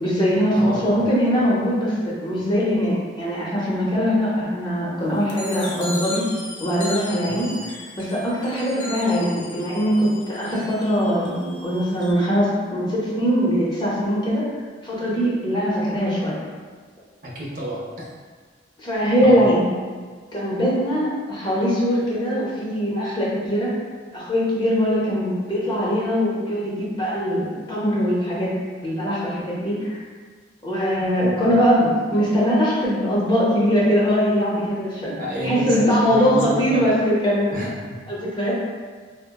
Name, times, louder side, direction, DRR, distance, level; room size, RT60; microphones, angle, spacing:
voice 1, 0.0-1.9 2.2-6.2 6.6-14.5 14.8-16.3 18.8-19.7 20.3-23.7 24.1-28.5 28.8-30.0 30.6-37.6 38.1-38.5, equal, 25° left, -6 dB, 0.6 m, -21 dB
voice 2, 0.5-0.8 7.2-7.5 17.2-18.1 19.2-19.6 31.5-31.6 35.2-36.8 37.5-38.0, equal, 45° right, -4 dB, 0.5 m, -29 dB
sound 1, 5.3-12.1, left 2 dB, 85° left, 0.6 m, -37 dB
3.8 x 2.1 x 2.2 m, 1.5 s
head